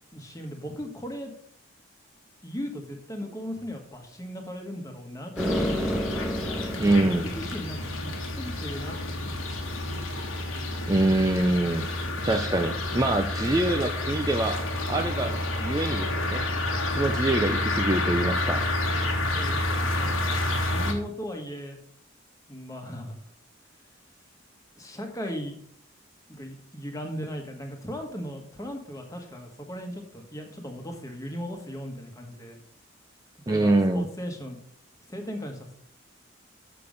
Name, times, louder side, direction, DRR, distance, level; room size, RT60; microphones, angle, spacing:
voice 1, 0.1-1.3 2.4-6.3 7.0-10.1 19.3-21.8 22.5-23.2 24.8-25.6 26.3-32.6 33.5-34.6 35.1-35.7, equal, 15° left, 3 dB, 1.3 m, -37 dB
sound 1, 5.4-20.9, left 2 dB, 85° left, 1.6 m, -29 dB
sound 2, 5.4-7.7, equal, ahead, 1.0 m, -29 dB
voice 2, 6.8-7.3 10.9-11.9 12.2-14.6 14.9-16.4 16.9-18.6 33.5-34.1, right 2 dB, 20° right, 5 dB, 0.4 m, -25 dB
6.9 x 6.8 x 5.2 m, 0.64 s
head